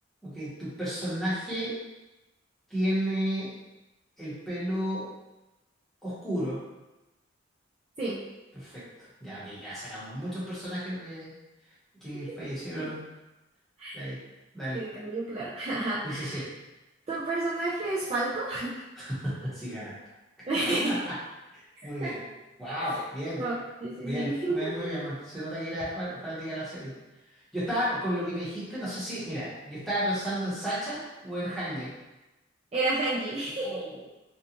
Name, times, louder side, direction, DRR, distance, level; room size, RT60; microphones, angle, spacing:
voice 1, 0.2-1.7 2.7-3.5 4.2-5.1 6.0-6.6 8.5-8.8 9.2-11.3 12.0-13.0 13.9-14.2 14.5-14.8 16.0-16.5 19.0-19.9 20.7-21.1 21.5-22.2 22.6-23.4 24.0-27.0 27.5-31.9 33.6-34.0, equal, ahead, -12 dB, 0.9 m, -33 dB
voice 2, 14.7-16.4 17.1-18.7 20.5-21.0 21.8-22.1 23.4-24.9 32.7-33.8, right 2 dB, 30° right, -9 dB, 0.3 m, -30 dB
2.5 x 2.3 x 2.8 m, 1.0 s
head